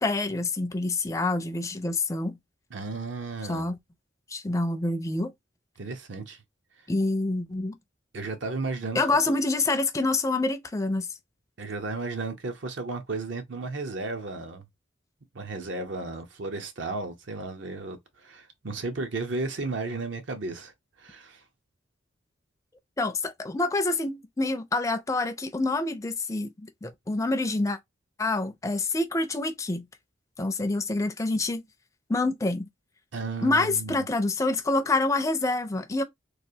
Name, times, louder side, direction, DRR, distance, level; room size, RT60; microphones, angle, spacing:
voice 1, 0.0-2.4 3.5-3.8 4.3-5.3 6.9-7.7 8.9-11.1 23.0-26.5 26.8-27.8 28.2-29.8 30.4-31.6 32.1-32.7 33.4-36.0, left 2 dB, 15° left, 0.4 m, -27 dB
voice 2, 2.7-3.7 5.8-6.4 8.1-9.3 11.6-14.7 15.3-20.7 21.0-21.4 33.1-34.0, right 3 dB, 70° right, 0.7 m, -34 dB
3.2 x 2.4 x 2.7 m
head